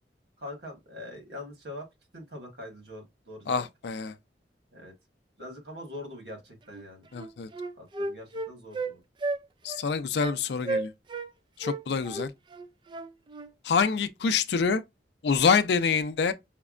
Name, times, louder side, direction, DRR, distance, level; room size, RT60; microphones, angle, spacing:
voice 1, 0.4-1.9 2.1-3.7 4.7-4.9 5.4-7.0 7.8-9.0, left 1 dB, 75° right, 1.5 m, -43 dB
voice 2, 3.5-4.1 7.1-7.5 9.6-10.9 11.6-12.3 13.6-14.8 15.2-16.3, left 5 dB, 65° left, 0.4 m, -26 dB
Wind instrument woodwind instrument, 6.7-6.9 7.2-8.9 9.2-9.4 9.7-9.8 10.2-10.4 10.6-11.3 11.6-13.5, right 2 dB, 25° right, 0.3 m, -33 dB
5.7 x 2.1 x 2.4 m
head